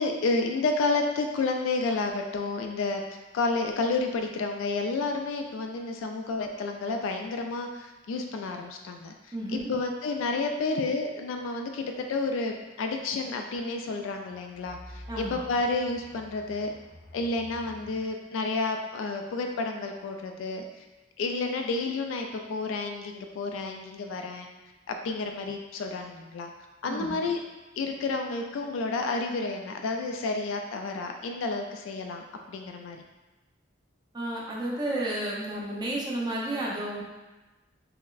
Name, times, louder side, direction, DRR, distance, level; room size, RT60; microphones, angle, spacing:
voice 1, 0.0-3.0 3.3-9.1 9.5-16.7 17.1-20.8 21.2-24.5 24.9-26.5 26.8-27.4 27.8-33.0, left 3 dB, 70° left, 3 dB, 0.3 m, -30 dB
voice 2, 9.3-9.7 15.1-15.4 26.9-27.1 34.1-37.0, right 1 dB, 20° right, -3 dB, 0.6 m, -32 dB
sound 1, 9.4-9.8 10.8-10.9 12.7-13.0 13.5-18.0, left 1 dB, 20° left, 0.7 m, -49 dB
5.7 x 2.0 x 2.4 m, 1.1 s
head